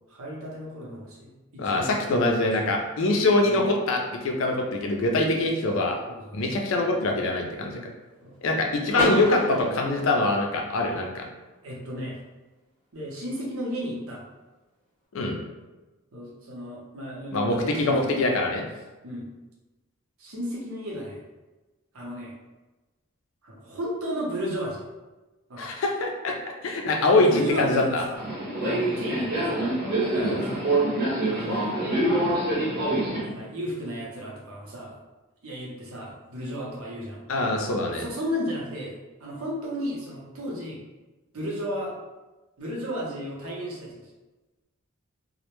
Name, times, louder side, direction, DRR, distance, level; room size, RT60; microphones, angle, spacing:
voice 1, 0.1-2.8 3.4-3.6 6.1-6.4 8.2-8.3 11.6-12.2 12.9-14.2 16.1-18.4 19.0-19.3 20.2-21.2 21.9-22.3 23.4-24.9 25.5-25.7 27.0-28.3 28.6-29.7 30.0-30.7 31.3-31.8 33.2-35.0 35.4-37.2 37.9-38.9 39.2-40.8 41.3-41.9 42.6-44.1, equal, 80° right, -3 dB, 0.7 m, -34 dB
voice 2, 1.6-6.0 6.3-7.8 8.4-11.2 15.1-15.4 17.3-18.6 25.6-26.3 26.6-28.0 30.2-30.3 37.3-38.0, left 2 dB, 70° left, 2 dB, 0.4 m, -24 dB
Car / Door, 8.9-10.9, equal, 10° right, 0.7 m, -30 dB
Subway metro underground, 28.2-33.2, right 1 dB, 45° right, 0.7 m, -25 dB
2.1 x 2.1 x 2.9 m, 1.1 s
head